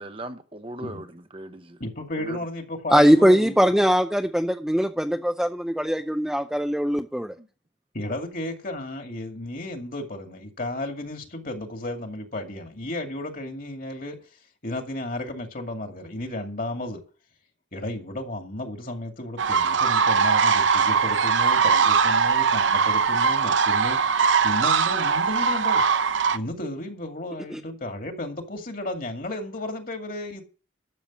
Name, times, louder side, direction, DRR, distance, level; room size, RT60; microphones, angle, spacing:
voice 1, 0.0-1.8 2.2-2.4 7.4-7.5, right 1 dB, 30° right, 0.9 m, -38 dB
voice 2, 1.8-3.7 7.9-14.2 14.6-17.0 17.7-24.0 24.4-25.8 26.3-30.4, left 1 dB, 45° left, 2.3 m, -33 dB
voice 3, 2.9-7.3 27.5-27.6, equal, 5° right, 0.5 m, -21 dB
sound 1, 19.4-26.4, right 5 dB, 75° right, 0.7 m, -21 dB
12.5 x 7.1 x 7.3 m
head